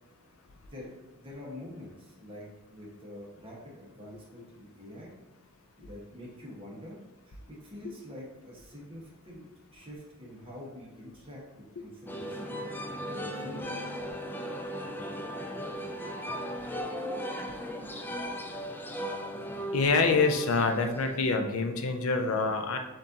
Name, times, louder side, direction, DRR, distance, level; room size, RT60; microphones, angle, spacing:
voice 1, 0.7-5.1 5.8-7.0 7.2-13.6, left 1 dB, 25° right, -5 dB, 1.3 m, -46 dB
sound 1, 12.1-21.2, equal, 10° left, 0.3 m, -37 dB
voice 2, 19.7-22.8, left 4 dB, 75° left, 5 dB, 0.5 m, -26 dB
7.2 x 2.6 x 2.8 m, 1.0 s
head